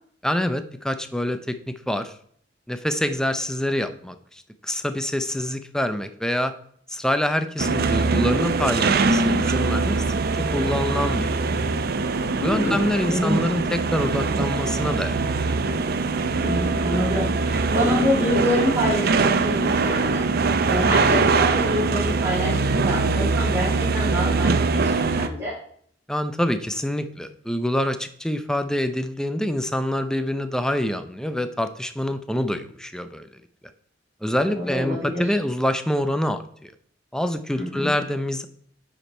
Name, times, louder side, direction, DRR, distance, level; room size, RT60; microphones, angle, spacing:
voice 1, 0.2-2.1 2.7-6.5 6.9-10.2 10.5-11.3 12.4-15.2 15.5-15.6 26.1-33.3 34.2-36.7 37.1-38.5, left 1 dB, 5° left, 9 dB, 0.6 m, -26 dB
sound 1, 7.6-25.3, right 4 dB, 55° right, 0.6 m, -22 dB
voice 2, 12.3-13.4 16.4-25.5 34.5-35.4 37.6-37.9, left 1 dB, 15° right, -9 dB, 3.2 m, -27 dB
9.5 x 5.1 x 4.4 m, 0.62 s
head